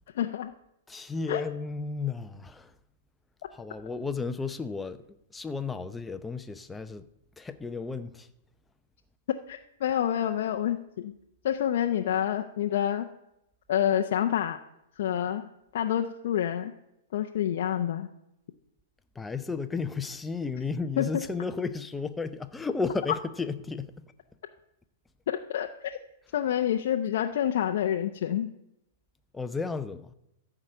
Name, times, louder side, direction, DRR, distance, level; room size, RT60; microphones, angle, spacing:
voice 1, 0.1-0.5 1.3-1.4 9.5-11.1 11.4-13.1 13.7-14.6 15.0-15.5 15.7-16.7 17.1-18.1 21.0-21.3 25.3-25.9 26.3-28.5, left 10 dB, 65° left, 0.6 m, -28 dB
voice 2, 0.9-2.7 3.5-5.0 5.3-7.0 7.4-8.3 19.2-23.9 29.3-30.1, left 4 dB, 10° left, 0.6 m, -33 dB
13.5 x 4.9 x 6.7 m
hypercardioid pair, 125°, 0 cm